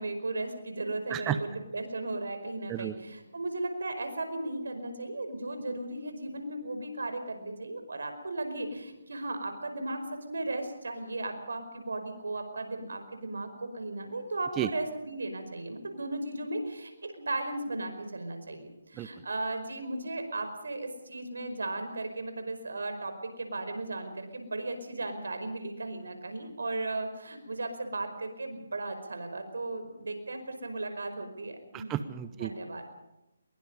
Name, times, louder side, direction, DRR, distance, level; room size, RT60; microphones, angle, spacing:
voice 1, 0.0-31.9 32.4-32.8, right 2 dB, 80° right, 7 dB, 5.1 m, -36 dB
voice 2, 1.1-1.4 2.7-3.0 14.6-14.7 18.9-19.1 31.7-32.5, right 11 dB, 15° right, 12 dB, 0.7 m, -32 dB
23.0 x 22.0 x 5.5 m, 0.96 s
hypercardioid pair, 160°, 0 cm